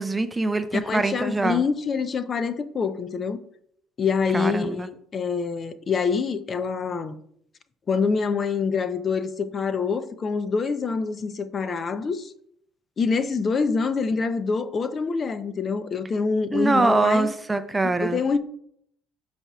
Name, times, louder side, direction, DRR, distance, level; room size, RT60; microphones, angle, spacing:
voice 1, 0.0-1.7 4.3-4.9 16.5-18.2, right 2 dB, 20° right, 0.5 m, -23 dB
voice 2, 0.7-3.4 4.0-7.2 7.9-12.3 13.0-17.3 17.8-18.4, left 5 dB, 40° left, 0.6 m, -26 dB
12.5 x 4.3 x 2.4 m
supercardioid pair, 75°, 0 cm